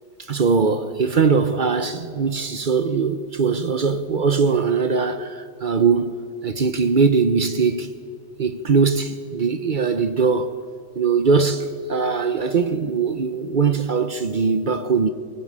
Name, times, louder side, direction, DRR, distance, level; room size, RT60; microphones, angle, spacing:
voice 1, 0.2-7.9 8.4-10.5 11.0-15.1, right 5 dB, 55° right, 0.5 m, -21 dB
22.5 x 20.0 x 8.7 m
omnidirectional pair, 2.0 m